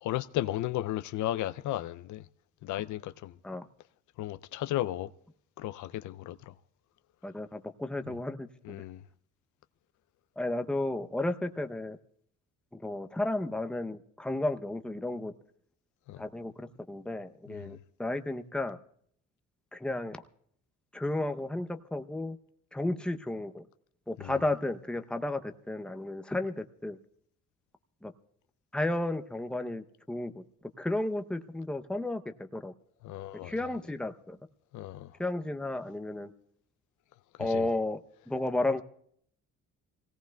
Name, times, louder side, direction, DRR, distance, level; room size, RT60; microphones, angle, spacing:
voice 1, 0.0-2.2 2.6-3.3 4.2-5.1 5.6-6.5 8.1-8.2 8.6-9.0 16.1-16.2 17.5-17.8 24.2-24.3 33.0-33.5 34.7-35.1 37.4-37.7, left 14 dB, 75° left, 0.5 m, -34 dB
voice 2, 7.2-8.8 10.4-12.0 12.8-15.3 16.2-18.8 19.7-20.2 20.9-22.4 22.7-23.7 24.1-27.0 28.0-28.1 28.7-30.4 30.8-32.7 33.4-34.4 35.2-36.3 37.4-38.0 38.3-38.8, left 2 dB, 5° left, 0.7 m, -33 dB
27.0 x 17.5 x 2.3 m
cardioid pair, 90°, 30 cm